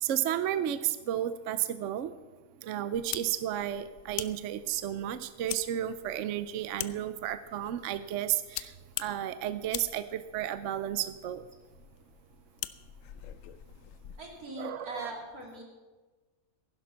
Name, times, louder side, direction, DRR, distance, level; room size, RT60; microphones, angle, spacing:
voice 1, 0.0-2.1 2.6-8.7 9.0-11.4 14.6-15.1, right 11 dB, 65° right, 12 dB, 0.9 m, -32 dB
sound 1, 2.9-14.3, left 12 dB, 70° left, 0.9 m, -44 dB
voice 2, 14.2-15.6, right 1 dB, 85° right, 0 dB, 3.4 m, -41 dB
15.5 x 11.0 x 5.7 m, 1.3 s
omnidirectional pair, 1.5 m